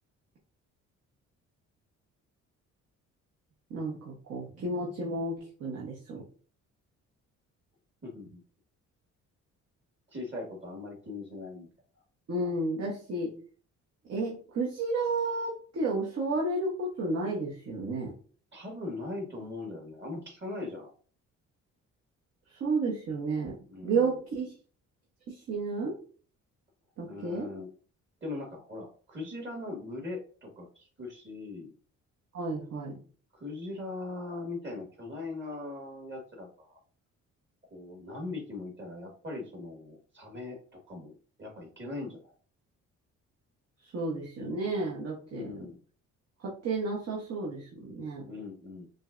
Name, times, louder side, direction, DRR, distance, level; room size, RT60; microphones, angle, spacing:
voice 1, 3.7-6.2 12.3-13.3 14.1-18.1 22.5-23.6 23.8-24.5 25.3-26.0 27.0-27.5 32.3-33.0 43.9-45.7 46.4-48.3, right 3 dB, 55° right, -3 dB, 1.0 m, -32 dB
voice 2, 8.0-8.4 10.1-11.7 18.5-20.9 23.7-24.1 27.1-27.7 28.2-31.7 33.3-36.8 37.7-42.3 45.3-45.7 48.3-48.9, left 2 dB, 40° right, 0 dB, 1.6 m, -40 dB
5.2 x 2.2 x 2.5 m, 0.42 s
cardioid pair, 90°, 30 cm